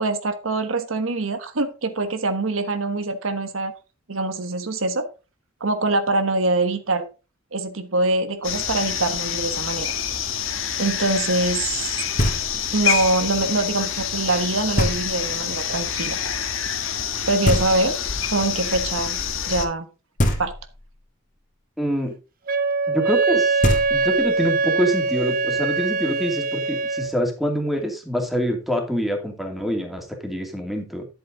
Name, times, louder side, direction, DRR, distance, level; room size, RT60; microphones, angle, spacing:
voice 1, 0.0-3.7 4.1-5.1 5.6-7.1 7.5-9.9 10.8-11.9 12.7-16.2 17.3-18.0 18.3-19.2 19.5-19.9 20.4-20.5, right 2 dB, 85° right, 8 dB, 1.3 m, -24 dB
sound 1, 8.4-19.7, left 8 dB, 80° left, 1.6 m, -27 dB
Knock, 12.2-12.8 14.8-15.4 17.4-18.3 20.2-21.0 23.3-23.4 23.6-24.4, equal, 40° left, 2.5 m, -24 dB
voice 2, 21.8-22.1 22.9-23.6 23.9-31.1, equal, ahead, 3 dB, 2.5 m, -25 dB
Wind instrument woodwind instrument, 22.5-27.1, right 4 dB, 45° right, 0.8 m, -22 dB
11.0 x 8.0 x 3.9 m, 0.31 s
head